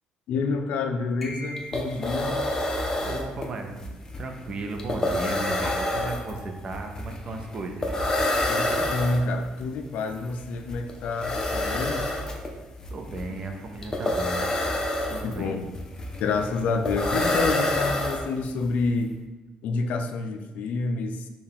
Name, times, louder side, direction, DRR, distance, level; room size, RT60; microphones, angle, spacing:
voice 1, 0.3-2.4 8.5-12.1 15.2-15.7 16.2-19.1 19.6-21.3, left 3 dB, 75° left, 6 dB, 0.4 m, -28 dB
sound 1, 1.2-2.1 5.6-6.9, left 1 dB, 5° left, 1.0 m, -37 dB
sound 2, 1.3-1.4 1.6-18.7, left 1 dB, 25° left, 0.5 m, -28 dB
voice 2, 3.0-8.0 12.9-14.6 15.1-15.6, right 2 dB, 45° right, 4 dB, 0.5 m, -35 dB
4.5 x 2.3 x 3.5 m, 1.1 s
cardioid pair, 120°, 3 cm